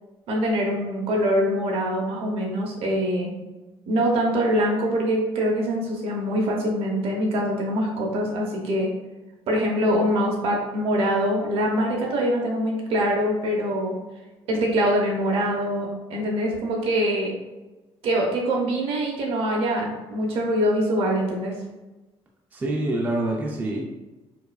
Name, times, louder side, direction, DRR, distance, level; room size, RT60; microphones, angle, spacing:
voice 1, 0.3-3.4 3.9-8.9 9.5-14.0 14.5-17.3 18.0-21.5, equal, 65° right, 0 dB, 0.9 m, -24 dB
voice 2, 22.5-23.8, right 1 dB, 15° right, -1 dB, 0.4 m, -26 dB
4.6 x 2.5 x 2.3 m, 1.1 s
cardioid pair, 160°, 11 cm